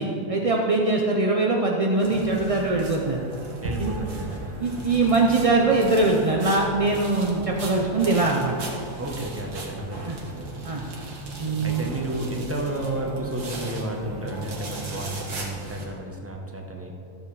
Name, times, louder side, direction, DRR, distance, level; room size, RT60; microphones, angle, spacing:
voice 1, 0.0-3.2 3.8-4.0 4.6-8.5 10.0-10.2 10.7-10.8 11.4-11.9, right 3 dB, 45° right, 0 dB, 0.4 m, -22 dB
sound 1, 2.0-15.8, right 2 dB, 85° right, 2.1 m, -36 dB
voice 2, 3.6-4.5 9.0-10.9 11.6-16.9, right 1 dB, 10° right, 0 dB, 1.0 m, -32 dB
13.5 x 7.3 x 4.8 m, 2.6 s
omnidirectional pair, 1.6 m